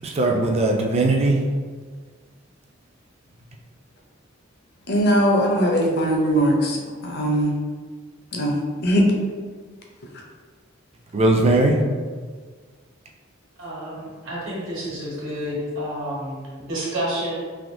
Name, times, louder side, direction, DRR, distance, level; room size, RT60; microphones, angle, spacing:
voice 1, 0.0-1.4 11.1-11.8, right 2 dB, 30° right, 1 dB, 0.4 m, -19 dB
voice 2, 4.9-7.6 8.3-9.1, equal, 55° left, 0 dB, 0.6 m, -20 dB
voice 3, 13.6-17.4, equal, 70° right, -6 dB, 1.3 m, -29 dB
3.4 x 2.7 x 2.6 m, 1.5 s
head